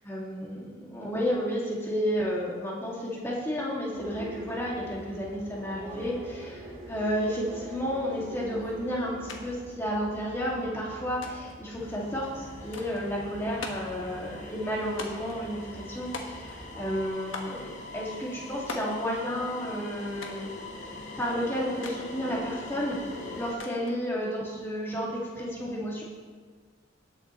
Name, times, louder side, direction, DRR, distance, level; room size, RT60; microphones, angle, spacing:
voice 1, 0.0-20.5 21.2-23.0 23.3-26.0, equal, 10° left, -5 dB, 2.2 m, -32 dB
sound 1, 3.9-17.1, right 1 dB, 25° right, 3.4 m, -45 dB
sound 2, 9.3-9.4 9.7-10.4 11.2-11.6 12.7-13.0 13.6-14.0 15.0-15.4 16.1-16.7 17.3-17.6 18.7-19.0 20.2-20.5 21.8-22.0 23.6-24.0, left 3 dB, 70° left, 1.4 m, -40 dB
sound 3, 11.8-23.5, left 2 dB, 35° left, 1.6 m, -43 dB
19.0 x 7.5 x 3.1 m, 1.5 s
head